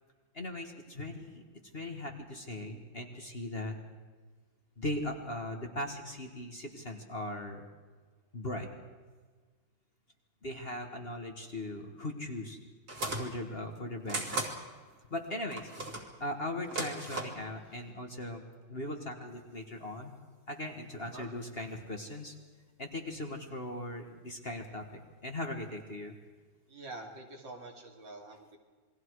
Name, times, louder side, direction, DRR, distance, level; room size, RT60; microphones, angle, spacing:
voice 1, 0.3-1.4 1.7-3.7 4.8-7.7 8.3-8.7 10.4-12.6 13.1-14.4 15.1-15.7 16.2-20.1 20.5-22.3 22.8-26.2, left 1 dB, 30° left, 3 dB, 1.8 m, -39 dB
sound 1, 12.9-13.3 14.1-14.5 15.5-16.1 16.6-17.4, right 2 dB, 50° right, 3.1 m, -36 dB
voice 2, 26.7-28.6, right 2 dB, 65° right, 2 dB, 3.4 m, -46 dB
28.5 x 21.5 x 4.8 m, 1.5 s
omnidirectional pair, 2.2 m